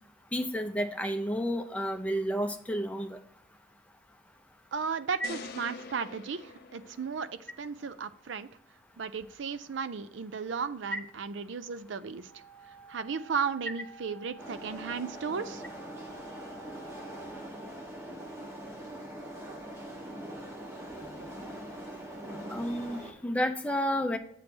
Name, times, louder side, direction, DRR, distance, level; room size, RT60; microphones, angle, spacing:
voice 1, 0.3-3.2 10.9-11.0 22.5-24.2, equal, 5° left, 5 dB, 0.6 m, -31 dB
voice 2, 4.7-7.3 7.6-8.5 9.0-12.3 12.9-15.6, right 6 dB, 75° right, 13 dB, 0.5 m, -35 dB
sound 1, 5.2-7.5, left 4 dB, 55° left, 0.6 m, -45 dB
Wind instrument woodwind instrument, 12.2-17.5, right 4 dB, 45° right, 0.9 m, -51 dB
sound 2, 14.4-23.1, right 1 dB, 15° right, 0.9 m, -42 dB
8.3 x 3.3 x 6.0 m, 0.64 s
head